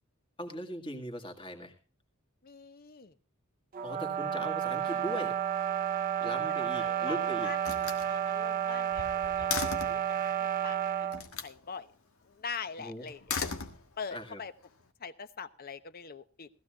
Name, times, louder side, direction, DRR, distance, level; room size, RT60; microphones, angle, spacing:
voice 1, 0.4-1.7 3.8-5.4 6.2-7.5 12.8-13.1 14.1-14.4, equal, 25° left, 4 dB, 2.1 m, -39 dB
voice 2, 2.4-3.1 6.2-7.8 8.1-10.2 10.6-10.8 11.4-11.9 12.3-13.5 14.0-14.5 15.0-16.5, left 5 dB, 45° left, 12 dB, 0.9 m, -43 dB
sound 1, 3.7-11.2, right 9 dB, 40° right, 0.7 m, -31 dB
Slam, 6.5-7.1 7.6-10.1 11.1-11.6 13.1-14.2, left 5 dB, 80° left, 1.6 m, -37 dB
19.5 x 14.5 x 2.4 m, 0.34 s
head